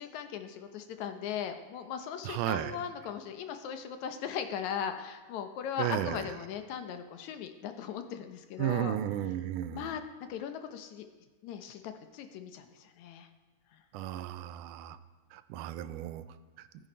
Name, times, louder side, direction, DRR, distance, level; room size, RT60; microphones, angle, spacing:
voice 1, 0.0-9.0 9.7-10.0 10.3-11.1 11.4-13.3, left 8 dB, 75° left, 8 dB, 2.0 m, -38 dB
voice 2, 2.2-2.8 5.8-6.3 8.6-9.9 13.9-15.0 15.3-16.2 16.6-16.7, right 12 dB, 85° right, 13 dB, 2.1 m, -34 dB
13.0 x 9.6 x 5.1 m, 1.3 s
omnidirectional pair, 3.6 m